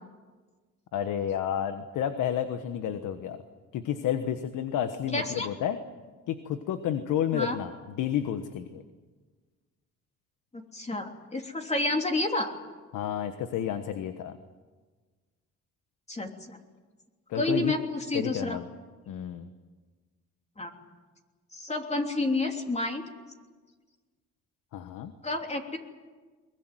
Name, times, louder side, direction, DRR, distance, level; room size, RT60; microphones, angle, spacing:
voice 1, 0.9-3.4 3.7-5.8 6.3-7.7 8.0-8.8 12.9-14.3 17.3-17.7 18.1-18.7 19.1-19.5 24.7-25.1, left 9 dB, 85° left, 9 dB, 1.4 m, -30 dB
voice 2, 5.1-5.5 7.3-7.6 10.5-12.5 16.1-16.6 17.3-18.6 20.6-20.7 21.5-23.0 25.2-25.8, left 2 dB, 20° left, 3 dB, 3.2 m, -30 dB
22.0 x 21.5 x 9.2 m, 1.4 s
cardioid pair, 90°, 30 cm